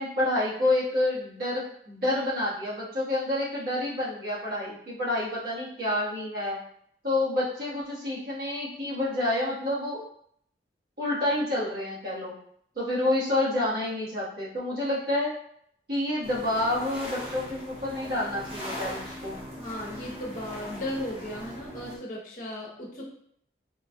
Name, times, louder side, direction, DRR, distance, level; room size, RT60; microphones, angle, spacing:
voice 1, 0.0-6.6 7.0-10.0 11.0-12.3 12.7-15.4 15.9-19.4, left 1 dB, 55° right, -8 dB, 1.4 m, -28 dB
sound 1, 16.2-22.0, equal, 30° right, 0.8 m, -40 dB
voice 2, 19.6-23.2, left 1 dB, 50° left, -4 dB, 0.9 m, -36 dB
4.3 x 2.3 x 2.6 m, 0.67 s
head